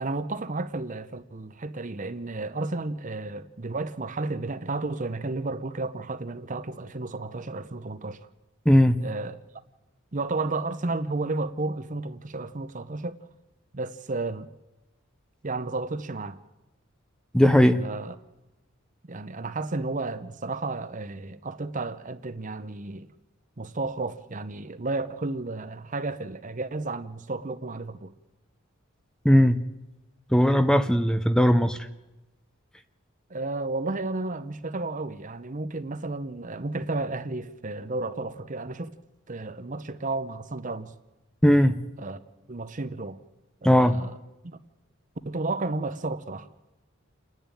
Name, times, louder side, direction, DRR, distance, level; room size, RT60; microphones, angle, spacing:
voice 1, 0.0-8.3 9.0-9.4 10.1-13.2 13.7-14.5 15.4-16.4 17.7-18.1 19.1-23.1 23.6-28.1 33.3-38.9 39.3-40.9 42.0-42.2 42.5-43.2 43.6-44.1 44.4-44.6 45.3-46.5, right 3 dB, 40° right, 0.8 m, -32 dB
voice 2, 8.7-9.0 17.3-17.8 29.2-29.6 30.3-31.8 41.4-41.8 43.6-43.9, equal, 5° left, 0.6 m, -18 dB
29.0 x 10.5 x 9.1 m
head